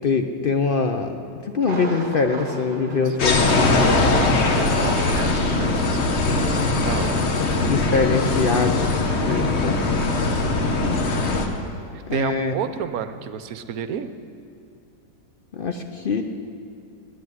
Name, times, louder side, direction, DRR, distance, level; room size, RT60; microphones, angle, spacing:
voice 1, 0.0-1.2 1.4-3.6 7.6-10.1 12.1-12.5 15.5-16.2, left 4 dB, 65° left, 5 dB, 0.5 m, -23 dB
Thunder, 1.6-4.2 4.4-4.5 5.1-5.2, right 3 dB, 35° right, 1.3 m, -36 dB
voice 2, 3.0-3.4 4.1-6.2 6.5-7.2 9.2-9.6 10.6-10.8 11.9-14.1, right 8 dB, 70° right, 11 dB, 1.0 m, -32 dB
sound 1, 3.2-11.5, left 3 dB, 45° left, 1.2 m, -21 dB
10.0 x 9.3 x 9.4 m, 2.6 s
omnidirectional pair, 1.7 m